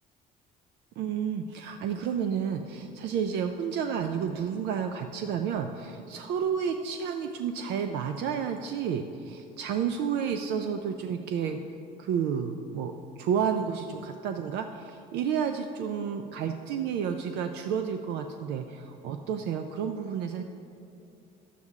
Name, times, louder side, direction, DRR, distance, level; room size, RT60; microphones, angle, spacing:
voice 1, 1.0-11.6 12.0-12.9 13.2-20.4, right 7 dB, 85° right, 6 dB, 0.5 m, -31 dB
11.0 x 8.2 x 3.6 m, 2.7 s
cardioid pair, 110°, 17 cm